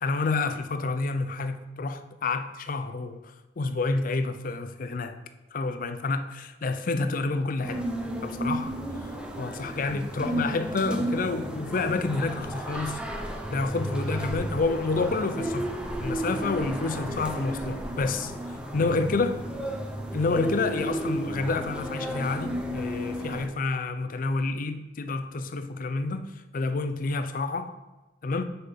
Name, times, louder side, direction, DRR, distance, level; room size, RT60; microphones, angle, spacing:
voice 1, 0.0-5.2 5.5-7.8 8.2-8.8 9.4-13.2 13.5-15.7 16.0-18.3 18.7-19.4 20.1-27.7 28.2-28.4, left 3 dB, 50° left, 0.5 m, -29 dB
sound 1, 7.6-23.5, right 1 dB, 5° right, 0.7 m, -33 dB
6.6 x 5.8 x 3.7 m
head